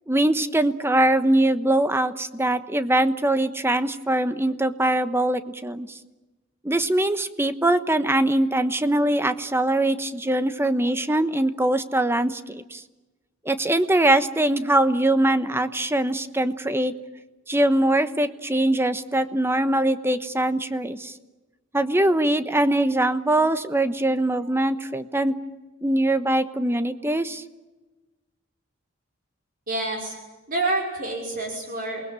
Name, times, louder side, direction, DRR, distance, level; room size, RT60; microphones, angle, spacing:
voice 1, 0.1-5.9 6.6-12.8 13.4-16.9 17.5-21.1 21.7-25.4 25.8-27.4, right 1 dB, 10° right, 11 dB, 1.1 m, -22 dB
voice 2, 29.7-30.2 30.5-32.0, right 2 dB, 45° right, 1 dB, 5.5 m, -27 dB
28.0 x 20.5 x 9.1 m, 1.2 s
head